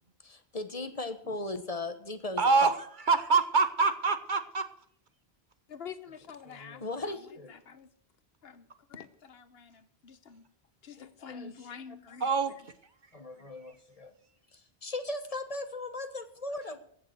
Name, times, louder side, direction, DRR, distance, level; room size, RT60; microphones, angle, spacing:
voice 1, 0.2-2.7 6.4-7.5 11.0-11.5 13.1-14.1 14.5-16.8, left 2 dB, 35° left, 9 dB, 1.2 m, -38 dB
voice 2, 2.4-4.7 12.2-12.5, right 4 dB, 50° right, 11 dB, 1.1 m, -25 dB
voice 3, 5.7-7.2 7.5-7.9 8.4-10.4 10.8-12.3, left 6 dB, 70° left, 13 dB, 1.1 m, -47 dB
15.5 x 6.8 x 7.7 m, 0.63 s
omnidirectional pair, 1.1 m